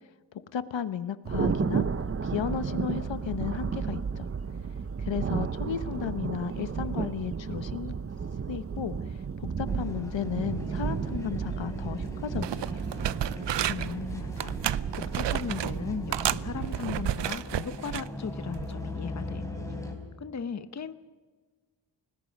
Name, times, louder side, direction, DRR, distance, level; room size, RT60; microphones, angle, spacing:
voice 1, 0.5-1.8 2.2-4.2 5.0-7.9 8.5-9.0 9.4-12.6, left 8 dB, 75° left, 12 dB, 1.1 m, -34 dB
Thunder, 1.2-17.3, right 6 dB, 30° right, 0.7 m, -33 dB
sound 1, 9.6-19.9, left 2 dB, 5° left, 4.1 m, -41 dB
sound 2, 12.0-12.1 12.4-14.0 14.4-15.7 16.1-18.1 18.6-18.8, right 11 dB, 65° right, 0.6 m, -31 dB
voice 2, 13.7-19.5 20.2-20.9, left 6 dB, 35° left, 11 dB, 0.9 m, -37 dB
30.0 x 19.5 x 5.3 m, 1.4 s
wide cardioid pair, 125°, 46 cm